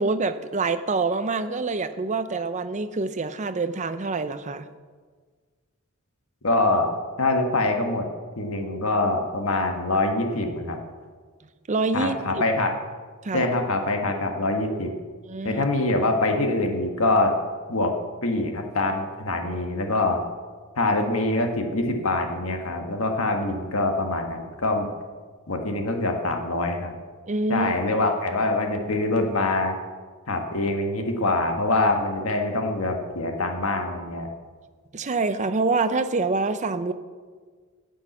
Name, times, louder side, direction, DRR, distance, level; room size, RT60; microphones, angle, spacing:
voice 1, 0.0-4.7 11.7-12.2 13.2-13.5 15.3-15.7 27.3-28.1 34.9-36.9, right 3 dB, 35° right, 11 dB, 0.6 m, -26 dB
voice 2, 6.4-6.9 7.2-8.1 8.4-10.8 11.9-12.7 13.3-14.9 15.4-17.4 17.7-18.0 18.2-20.2 20.8-24.9 25.5-27.0 27.5-29.7 30.3-34.3, left 2 dB, 85° left, 4 dB, 1.5 m, -24 dB
10.0 x 7.3 x 8.4 m, 1.5 s
head